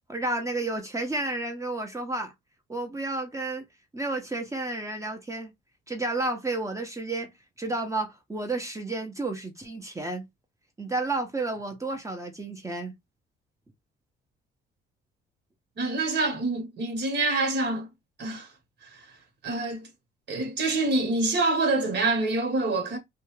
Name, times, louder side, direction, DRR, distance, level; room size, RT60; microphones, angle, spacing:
voice 1, 0.0-2.3 2.7-3.7 3.9-5.5 5.9-7.3 7.6-10.3 10.8-12.9, right 2 dB, 15° right, 0.8 m, -31 dB
voice 2, 15.8-17.9 18.2-18.5 18.8-19.1 19.4-19.9 20.3-23.0, right 2 dB, 60° right, 1.3 m, -26 dB
2.7 x 2.3 x 3.1 m
cardioid pair, 90°, 20 cm